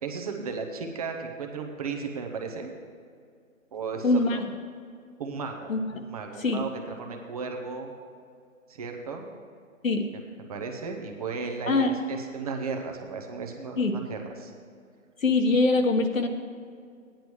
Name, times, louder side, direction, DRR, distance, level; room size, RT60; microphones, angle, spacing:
voice 1, 0.0-2.7 3.7-4.4 5.2-7.9 8.7-9.3 10.5-14.5, right 4 dB, 25° right, 3 dB, 1.0 m, -35 dB
voice 2, 4.0-4.4 5.7-5.9 6.4-6.6 9.8-10.1 11.7-11.9 13.8-13.9 15.2-16.3, left 3 dB, 70° left, 4 dB, 1.5 m, -23 dB
16.0 x 10.0 x 3.1 m, 2.2 s
figure-of-eight pair, 150°, 41 cm